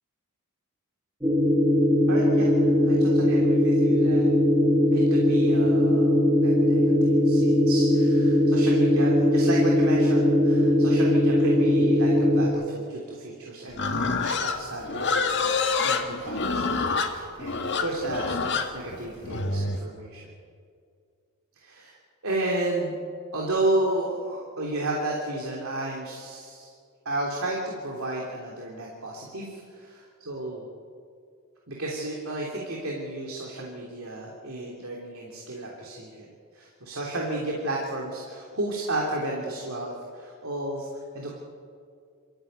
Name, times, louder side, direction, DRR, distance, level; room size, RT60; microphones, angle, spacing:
sound 1, 1.2-12.5, left 1 dB, 10° right, 2.0 m, -20 dB
voice 1, 2.1-4.3 4.9-15.5 15.8-20.3 21.6-22.0 22.2-22.9 23.3-26.7 27.0-30.7 31.7-40.9 41.1-41.4, right 1 dB, 70° right, -2 dB, 3.3 m, -32 dB
Livestock farm animals working animals, 13.7-19.8, left 4 dB, 55° left, 1.8 m, -27 dB
26.5 x 14.0 x 9.0 m, 2.2 s
head